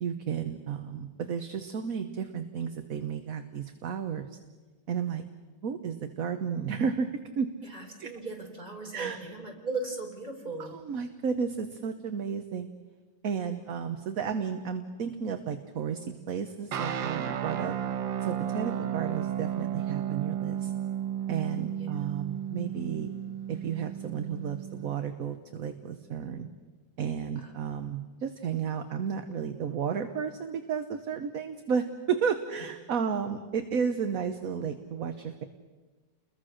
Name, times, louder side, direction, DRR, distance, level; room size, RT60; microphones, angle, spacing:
voice 1, 0.0-4.4 4.9-5.2 5.6-7.1 7.4-7.5 8.0-8.1 8.9-9.2 10.6-12.7 13.2-17.7 18.2-20.7 21.3-23.1 23.5-26.5 27.0-35.4, right 7 dB, 50° right, 7 dB, 1.4 m, -32 dB
voice 2, 7.6-10.8 17.2-17.4 18.7-18.8 21.7-21.9 27.4-27.5, right 3 dB, 25° right, 0 dB, 4.4 m, -38 dB
sound 1, 16.7-25.0, right 10 dB, 80° right, 1.8 m, -33 dB
29.5 x 21.5 x 6.5 m, 1.3 s
omnidirectional pair, 2.0 m